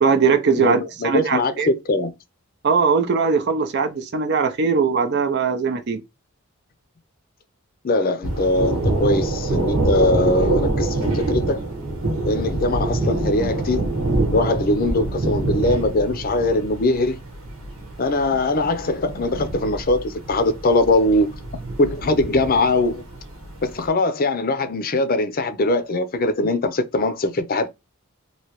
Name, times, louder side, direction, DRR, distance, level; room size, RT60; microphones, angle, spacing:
voice 1, 0.0-1.7 2.6-6.0, right 5 dB, 55° right, 0.5 m, -20 dB
voice 2, 0.6-2.1 7.8-11.6 12.2-17.2 18.0-21.3 21.8-23.0 23.6-27.7, left 2 dB, 45° left, 0.5 m, -21 dB
Thunder, 8.2-23.8, right 2 dB, 85° right, 1.2 m, -26 dB
3.1 x 2.7 x 2.9 m
head